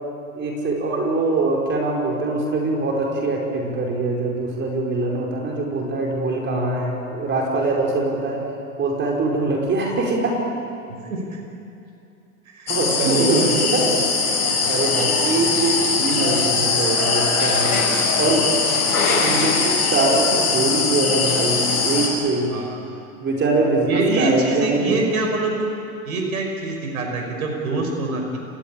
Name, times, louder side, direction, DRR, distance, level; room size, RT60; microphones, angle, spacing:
voice 1, 0.3-8.4 8.8-10.4 12.7-14.0 14.2-17.9 18.2-18.5 19.2-22.5 23.2-25.0, right 2 dB, 25° right, -1 dB, 5.0 m, -23 dB
voice 2, 11.1-11.4 12.5-12.7 13.0-13.6 22.5-22.8 23.9-25.7 26.1-28.4, right 3 dB, 75° right, 1 dB, 5.9 m, -25 dB
sound 1, 12.7-22.1, left 4 dB, 85° left, 7.2 m, -21 dB
30.0 x 17.0 x 8.8 m, 2.6 s
hypercardioid pair, 110°, 43 cm